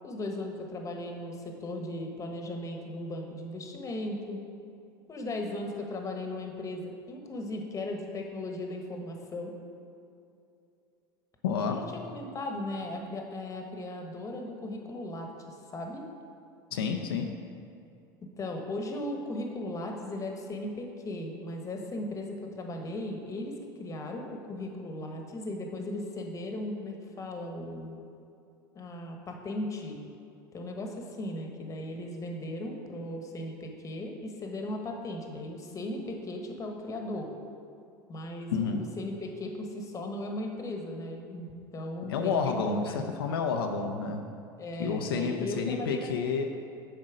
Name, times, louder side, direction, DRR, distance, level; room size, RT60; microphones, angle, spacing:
voice 1, 0.0-4.4 5.1-9.6 11.7-16.0 18.4-28.0 28.7-30.0 30.5-37.3 38.1-43.0 44.6-46.1, left 1 dB, 25° left, 2 dB, 1.2 m, -37 dB
voice 2, 11.4-12.1 16.7-17.4 38.5-38.9 42.1-44.4 44.8-46.5, left 5 dB, 85° left, 3 dB, 0.5 m, -30 dB
7.6 x 5.3 x 5.0 m, 2.6 s
hypercardioid pair, 90°, 12 cm